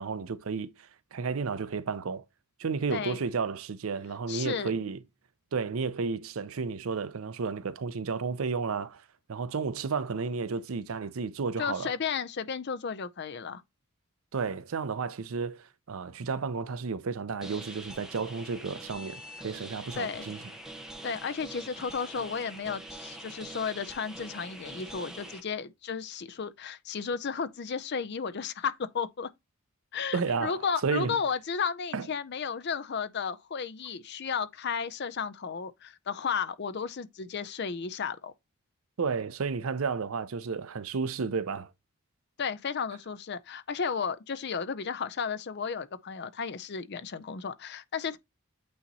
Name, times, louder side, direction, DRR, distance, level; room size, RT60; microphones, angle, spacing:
voice 1, 0.0-2.2 2.6-5.0 5.5-9.0 9.3-11.9 14.3-20.4 30.1-31.2 31.9-32.1 39.0-41.7, right 5 dB, 75° right, 0.5 m, -32 dB
voice 2, 4.3-4.7 11.6-13.6 20.0-20.3 21.0-29.3 29.9-38.3 42.4-48.2, left 6 dB, 50° left, 0.5 m, -33 dB
sound 1, 17.4-25.4, right 1 dB, 5° right, 0.8 m, -44 dB
8.6 x 2.9 x 4.0 m
head